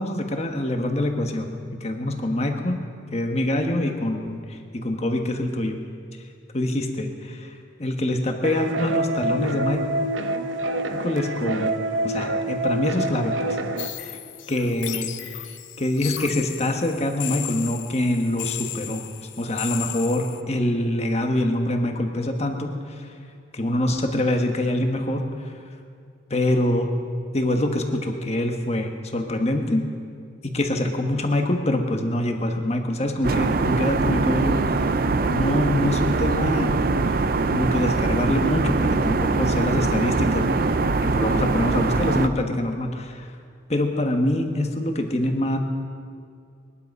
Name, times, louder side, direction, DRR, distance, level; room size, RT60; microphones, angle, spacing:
voice 1, 0.0-1.5 1.8-2.8 3.1-5.8 6.5-7.5 7.8-9.8 10.9-11.7 12.0-13.6 14.0-14.2 14.5-15.4 15.8-19.0 19.4-23.0 23.5-25.3 26.3-26.9 27.3-29.9 30.4-34.7 35.2-36.8 37.5-40.6 41.0-43.3 43.7-45.6, left 1 dB, 35° left, 4 dB, 1.3 m, -25 dB
sound 1, 8.4-13.9, right 2 dB, 90° right, 0.9 m, -26 dB
sound 2, 13.8-20.4, left 12 dB, 75° left, 0.7 m, -35 dB
sound 3, 33.2-42.3, right 3 dB, 50° right, 0.5 m, -22 dB
21.0 x 11.5 x 5.4 m, 2.3 s
head